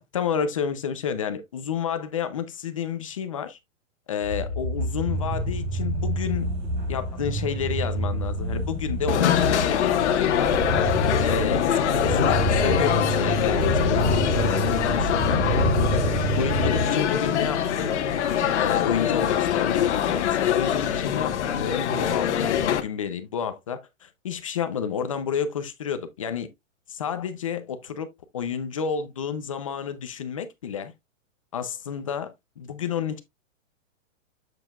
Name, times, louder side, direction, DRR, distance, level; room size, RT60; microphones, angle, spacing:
voice 1, 0.0-3.6 4.1-6.5 6.9-10.6 11.2-15.6 16.4-17.9 18.6-26.5 26.9-28.1 28.3-30.9 31.5-33.2, left 7 dB, 25° left, 0.5 m, -30 dB
sound 1, 4.2-16.8, right 1 dB, 40° right, 4.2 m, -27 dB
sound 2, 9.1-22.8, left 9 dB, 60° left, 1.3 m, -24 dB
7.8 x 6.8 x 2.3 m
supercardioid pair, 175°, 40 cm